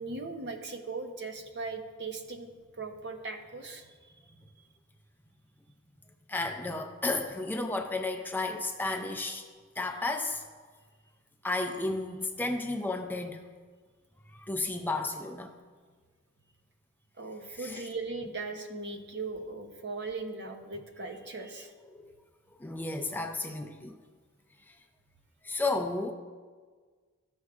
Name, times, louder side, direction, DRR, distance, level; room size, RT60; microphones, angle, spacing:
voice 1, 0.0-2.5 2.8-4.1 17.2-21.7, right 3 dB, 55° right, 5 dB, 0.8 m, -39 dB
voice 2, 6.3-9.5 9.8-10.4 11.4-13.4 14.3-15.5 17.5-17.9 21.8-22.1 22.6-24.0 24.7-24.8 25.4-26.1, left 2 dB, 10° left, 5 dB, 0.4 m, -33 dB
14.0 x 6.2 x 2.4 m, 1.5 s
head